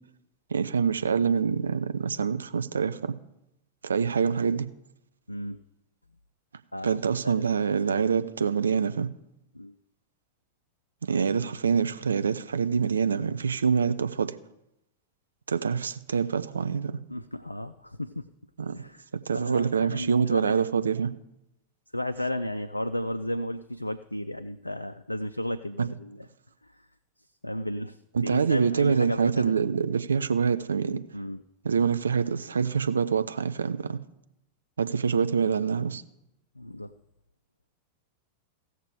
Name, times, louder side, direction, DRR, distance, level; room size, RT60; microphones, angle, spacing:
voice 1, 0.5-3.2 3.8-4.7 6.8-9.1 11.0-14.4 15.5-17.0 18.6-18.8 19.3-21.1 25.8-25.9 28.1-31.0 31.6-34.0 34.8-36.0, right 6 dB, 70° right, 0.5 m, -25 dB
voice 2, 5.3-5.6 6.7-7.0 7.2-7.6 7.9-8.1 9.5-9.7 17.1-18.3 18.7-19.0 19.3-20.6 21.9-26.3 27.4-28.0 28.2-29.6 31.1-31.4 36.6-36.9, left 1 dB, 85° left, 0.3 m, -33 dB
16.5 x 6.6 x 4.9 m
figure-of-eight pair, 90°, 0 cm